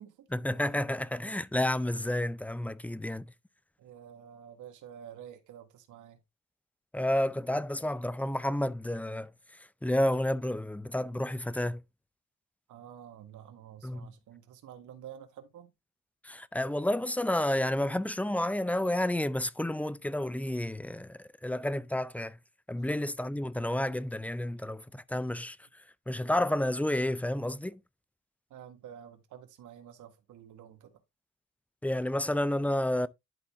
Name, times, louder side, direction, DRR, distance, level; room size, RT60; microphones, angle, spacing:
voice 1, 0.3-3.3 6.9-9.3 9.8-11.8 13.8-14.1 16.2-22.4 22.7-25.6 26.1-27.8 31.8-33.1, left 1 dB, 5° left, 0.5 m, -30 dB
voice 2, 3.8-6.2 12.7-15.7 22.8-23.0 28.5-30.9, right 9 dB, 80° right, 1.7 m, -49 dB
11.0 x 4.1 x 3.5 m
cardioid pair, 90°, 30 cm